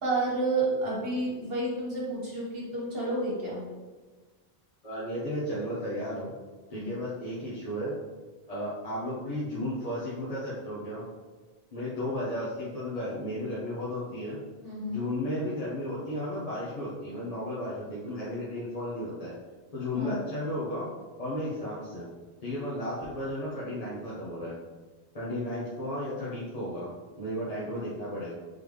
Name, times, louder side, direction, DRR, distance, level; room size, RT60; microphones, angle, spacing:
voice 1, 0.0-3.6 6.7-6.9 14.6-15.0 19.9-20.2, right 2 dB, 65° right, -5 dB, 1.4 m, -30 dB
voice 2, 4.8-6.3 6.7-7.9 8.5-11.0 11.7-14.4 14.9-19.3 19.7-20.9 21.2-22.1 22.4-24.5 25.1-28.3, left 1 dB, 35° left, -9 dB, 0.9 m, -34 dB
3.8 x 3.4 x 3.2 m, 1.3 s
omnidirectional pair, 1.1 m